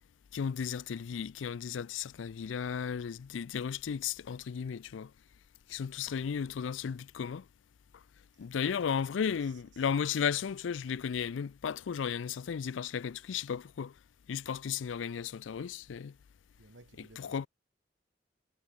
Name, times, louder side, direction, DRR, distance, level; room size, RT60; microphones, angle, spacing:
voice 1, 0.3-5.1 5.7-7.4 8.4-13.9 14.3-16.1 17.0-17.5, left 7 dB, 90° left, 0.4 m, -34 dB
voice 2, 8.3-9.5 16.6-17.5, right 2 dB, 85° right, 1.7 m, -58 dB
head